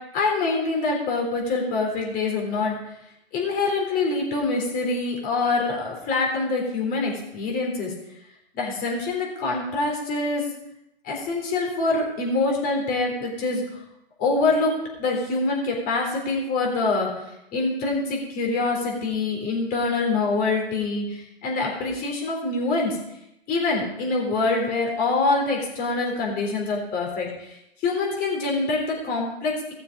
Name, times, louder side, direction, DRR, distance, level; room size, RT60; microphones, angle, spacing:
voice 1, 0.0-2.8 3.3-7.9 8.5-10.5 11.0-13.6 14.2-17.2 17.5-23.0 23.5-27.5 27.8-29.7, left 3 dB, 30° left, 0 dB, 3.7 m, -25 dB
16.5 x 7.0 x 4.8 m, 0.83 s
hypercardioid pair, 130°, 32 cm